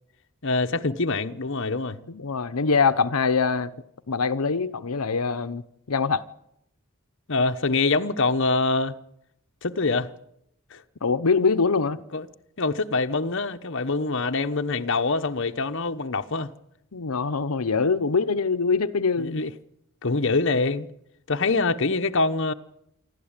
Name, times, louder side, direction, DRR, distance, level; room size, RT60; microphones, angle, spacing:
voice 1, 0.4-2.0 7.3-8.9 9.6-10.1 10.7-10.8 12.1-12.3 12.6-16.5 19.2-19.5 20.0-20.9 21.3-22.5, left 3 dB, 60° left, 1.1 m, -24 dB
voice 2, 2.1-3.7 4.1-5.6 5.9-6.2 11.0-12.0 16.9-19.4, left 4 dB, 90° left, 0.9 m, -23 dB
26.5 x 12.5 x 8.9 m
head